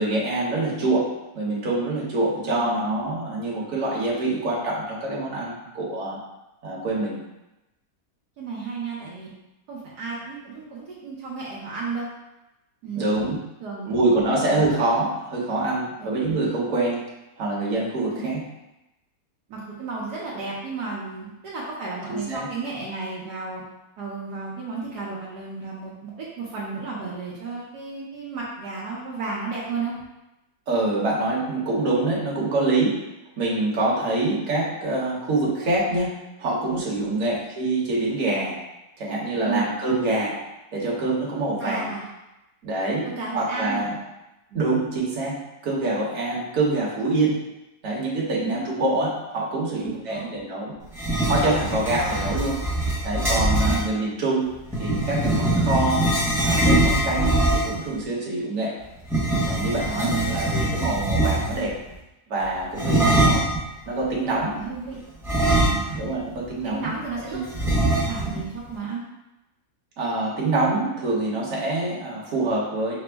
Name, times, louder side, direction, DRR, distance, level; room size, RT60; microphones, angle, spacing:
voice 1, 0.0-6.2 6.6-7.2 13.0-13.4 13.9-17.0 17.4-18.4 22.1-22.5 30.7-33.0 33.4-38.6 39.0-40.4 40.7-41.9 42.6-43.1 43.3-44.0 44.5-47.4 47.8-50.7 51.3-52.6 53.0-56.1 56.4-58.8 59.4-61.8 62.3-63.4 63.9-64.6 65.9-67.0 67.3-67.4 70.0-73.0, right 2 dB, 55° right, -4 dB, 1.3 m, -25 dB
voice 2, 2.4-2.8 8.4-9.3 9.7-12.1 12.8-13.3 13.6-14.4 16.0-16.2 18.1-18.3 19.5-23.6 24.0-29.9 37.1-37.3 39.4-39.7 41.6-42.1 43.0-43.9 44.5-44.7 48.4-48.7 49.7-50.3 53.6-53.9 59.9-60.3 63.0-63.4 64.5-65.0 65.7-66.0 66.6-69.0, right 4 dB, 70° right, -6 dB, 1.3 m, -33 dB
sound 1, 50.9-53.9 54.7-57.9 59.0-61.7 62.8-63.6 65.2-66.2 66.5-66.6 67.5-68.4, right 1 dB, ahead, 0.8 m, -22 dB
5.9 x 2.0 x 3.3 m, 0.95 s
omnidirectional pair, 1.9 m